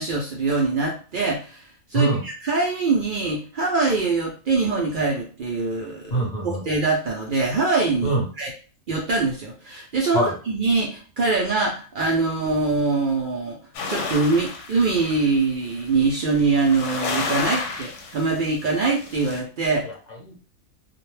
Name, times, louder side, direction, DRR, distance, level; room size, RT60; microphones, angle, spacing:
voice 1, 0.0-1.6 1.9-8.5 8.9-13.6 13.9-19.9, right 3 dB, 75° right, -2 dB, 0.4 m, -23 dB
voice 2, 6.1-6.6 8.0-8.2 10.1-10.4 19.9-20.4, right 1 dB, 45° left, -2 dB, 0.6 m, -24 dB
sound 1, 13.7-15.9 16.4-18.5 18.9-19.4, left 4 dB, 70° left, 0.9 m, -31 dB
2.3 x 2.1 x 3.1 m, 0.38 s
omnidirectional pair, 1.4 m